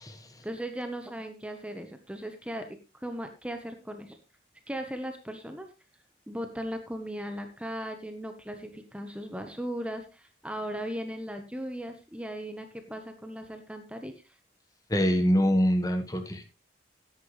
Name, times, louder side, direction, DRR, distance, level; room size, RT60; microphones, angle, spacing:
voice 1, 0.4-4.2 4.7-5.7 6.3-14.3, equal, 5° right, 6 dB, 1.1 m, -37 dB
voice 2, 14.9-16.5, equal, 20° left, 6 dB, 1.4 m, -24 dB
14.0 x 10.5 x 3.3 m, 0.28 s
head